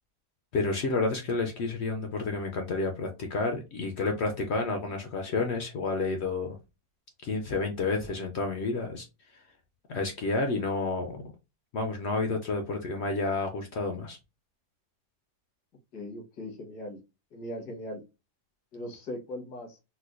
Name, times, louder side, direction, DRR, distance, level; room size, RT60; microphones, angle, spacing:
voice 1, 0.5-6.6 7.2-9.1 9.3-9.4 9.9-11.3 11.7-14.2, left 3 dB, 65° left, 4 dB, 0.6 m, -30 dB
voice 2, 15.9-17.0 17.3-18.0 18.7-19.8, left 1 dB, 85° left, 1 dB, 1.7 m, -39 dB
4.1 x 2.2 x 2.4 m, 0.26 s
omnidirectional pair, 1.7 m